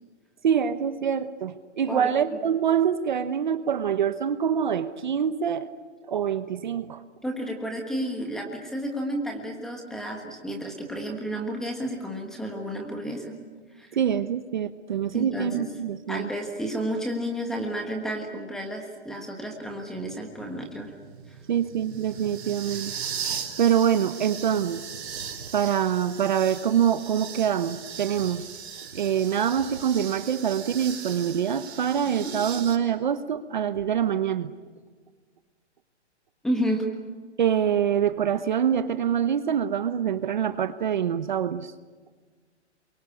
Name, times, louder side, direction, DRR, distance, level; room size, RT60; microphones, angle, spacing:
voice 1, 0.4-5.7 6.0-7.0 13.9-16.3 21.5-22.9 23.2-24.8 25.5-28.6 28.9-34.5 37.4-41.7, right 8 dB, 40° right, 12 dB, 1.0 m, -25 dB
voice 2, 1.9-2.4 7.2-13.4 13.7-14.0 15.1-15.6 16.1-20.9 21.3-21.4 32.2-32.3 36.4-36.8, equal, ahead, 2 dB, 1.4 m, -31 dB
sound 1, 19.6-32.7, right 7 dB, 65° right, 4.3 m, -38 dB
27.5 x 23.5 x 8.4 m, 1.5 s
hypercardioid pair, 175°, 35 cm